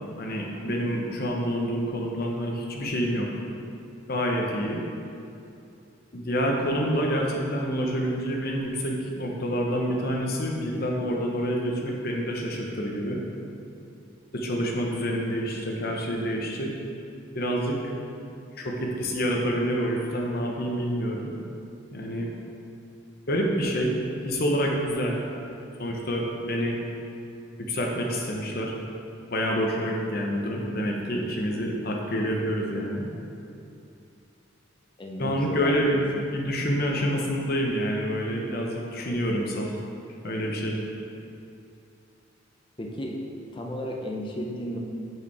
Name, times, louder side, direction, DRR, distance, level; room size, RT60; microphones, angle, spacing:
voice 1, 0.2-3.3 4.1-4.8 6.1-13.2 14.3-16.8 17.3-17.8 18.6-21.3 21.9-22.3 23.3-24.0 24.2-25.2 25.8-26.8 27.7-28.7 29.3-33.1 35.2-36.0 36.3-39.8 40.2-40.8, equal, 50° left, 0 dB, 0.9 m, -27 dB
voice 2, 35.0-36.0 42.8-43.2 43.5-44.8, equal, 25° left, 0 dB, 0.7 m, -33 dB
7.2 x 5.0 x 4.8 m, 2.7 s
head